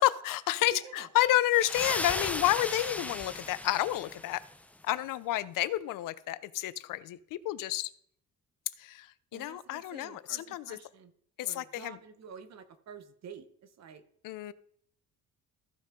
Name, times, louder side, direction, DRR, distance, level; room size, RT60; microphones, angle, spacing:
voice 1, 0.0-4.4 4.8-7.9 8.8-10.8 11.4-12.0 14.2-14.5, left 15 dB, 75° left, 17 dB, 0.5 m, -30 dB
voice 2, 0.7-1.1 9.3-11.1 11.4-14.0, right 7 dB, 55° right, 10 dB, 0.9 m, -49 dB
sound 1, 1.5-4.6, left 1 dB, 5° left, 0.4 m, -36 dB
14.5 x 5.6 x 3.7 m, 0.67 s
cardioid pair, 140°, 33 cm